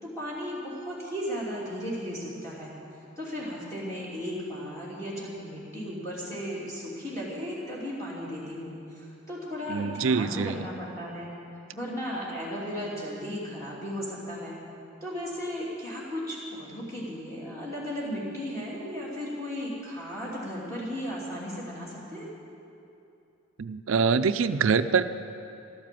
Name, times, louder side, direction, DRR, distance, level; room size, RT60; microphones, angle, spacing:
voice 1, 0.0-2.7 3.2-11.3 11.7-14.6 15.0-22.3, equal, 15° left, -7 dB, 2.8 m, -35 dB
voice 2, 9.7-10.6 23.6-25.0, right 5 dB, 75° right, 11 dB, 0.5 m, -24 dB
13.5 x 12.5 x 7.6 m, 2.7 s
head